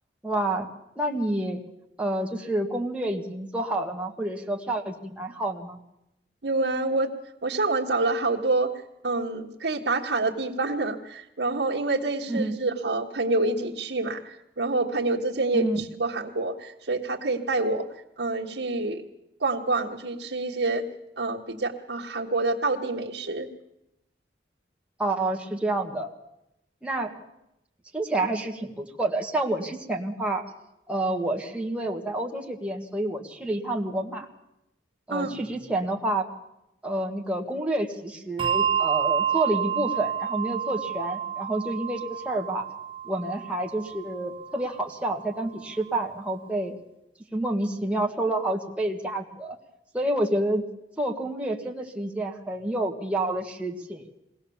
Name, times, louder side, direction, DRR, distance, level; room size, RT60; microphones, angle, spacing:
voice 1, 0.2-0.7 0.9-1.6 2.0-5.8 12.3-12.6 15.5-15.8 25.0-26.1 26.8-27.1 27.9-30.4 30.9-34.3 35.1-36.3 36.8-42.7 43.0-46.7 47.3-49.6 49.9-50.7 51.0-54.0, right 1 dB, 5° right, 0 dB, 1.7 m, -28 dB
voice 2, 6.4-7.1 7.4-8.7 9.0-17.9 18.2-19.0 19.4-20.9 21.2-23.5 35.1-35.3, right 3 dB, 80° right, -2 dB, 1.5 m, -27 dB
Bell, 38.4-45.3, right 9 dB, 30° right, 1.2 m, -29 dB
22.5 x 17.0 x 7.2 m, 0.85 s
head